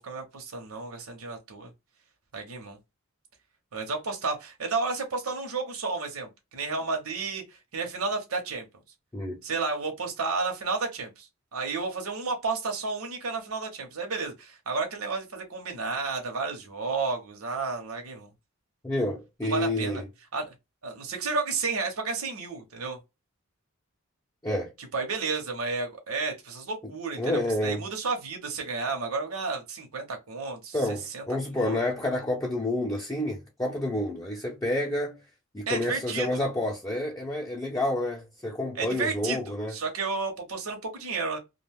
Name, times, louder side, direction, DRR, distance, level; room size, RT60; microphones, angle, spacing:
voice 1, 0.0-1.7 2.3-2.8 3.7-8.7 9.4-18.3 19.5-20.0 20.3-20.5 20.8-23.0 24.9-30.8 31.1-31.2 31.5-31.8 35.7-36.3 38.7-41.4, right 4 dB, 85° right, 0.8 m, -32 dB
voice 2, 18.8-20.0 24.4-24.7 26.8-26.9 27.2-27.8 30.7-35.2 35.5-39.7, left 1 dB, 15° left, 0.6 m, -29 dB
2.5 x 2.2 x 3.4 m
head